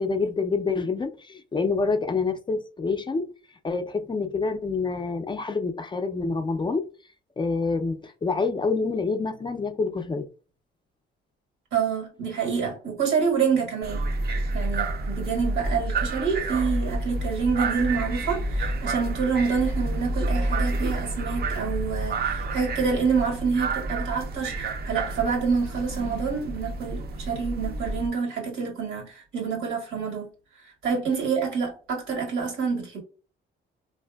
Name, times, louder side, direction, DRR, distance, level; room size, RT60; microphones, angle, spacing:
voice 1, 0.0-3.3 3.6-6.9 7.4-10.3, left 4 dB, 25° left, 0.4 m, -27 dB
voice 2, 11.7-14.0 14.5-30.3 30.6-33.0, right 5 dB, 85° right, 1.5 m, -27 dB
sound 1, 13.8-28.1, right 2 dB, 50° right, 0.6 m, -29 dB
4.0 x 2.6 x 2.3 m
cardioid pair, 90°, 20 cm